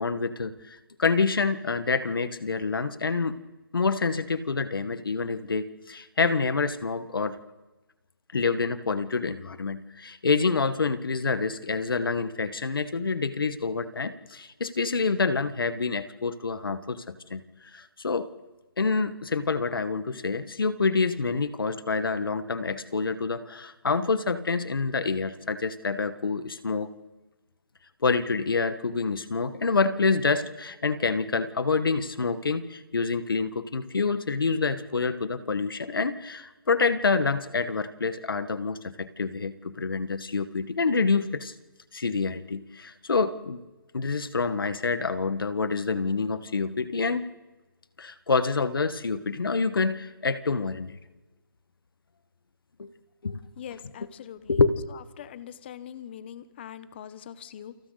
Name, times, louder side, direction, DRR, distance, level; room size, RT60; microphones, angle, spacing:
voice 1, 0.0-3.4 3.7-7.4 8.3-17.4 17.7-18.3 18.8-26.9 28.0-41.5 41.9-43.6 43.9-47.2 48.0-51.0 52.8-52.9 53.2-53.4 54.5-54.7, left 4 dB, 70° left, 12 dB, 1.6 m, -27 dB
voice 2, 53.6-54.6 55.2-57.8, left 9 dB, 30° left, 15 dB, 1.0 m, -42 dB
29.0 x 26.0 x 4.1 m, 1.1 s
hypercardioid pair, 160°, 12 cm